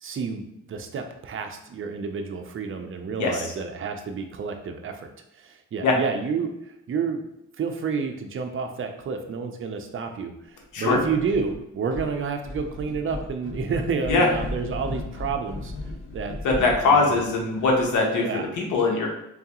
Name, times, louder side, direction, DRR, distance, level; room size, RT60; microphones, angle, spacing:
voice 1, 0.0-5.1 5.4-6.5 6.9-7.2 7.6-15.7 16.1-17.2 18.2-18.5, right 5 dB, 45° right, 5 dB, 0.6 m, -30 dB
sound 1, 10.9-11.6 11.9-17.9, left 2 dB, 45° left, 1.3 m, -36 dB
voice 2, 16.4-18.3 18.6-19.1, left 3 dB, 80° left, 0 dB, 1.1 m, -21 dB
3.9 x 3.4 x 3.0 m, 0.83 s
cardioid pair, 90°, 30 cm